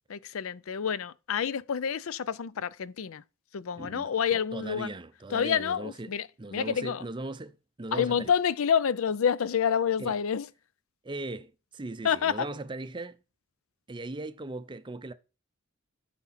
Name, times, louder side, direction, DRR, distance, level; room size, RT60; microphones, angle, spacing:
voice 1, 0.1-3.2 3.5-4.9 5.3-7.0 7.9-10.5 12.0-12.5, left 7 dB, 75° left, 0.5 m, -28 dB
voice 2, 3.8-6.1 6.4-8.3 10.0-10.1 11.0-13.2 13.9-15.1, right 2 dB, 20° right, 0.5 m, -39 dB
9.6 x 5.9 x 4.2 m
head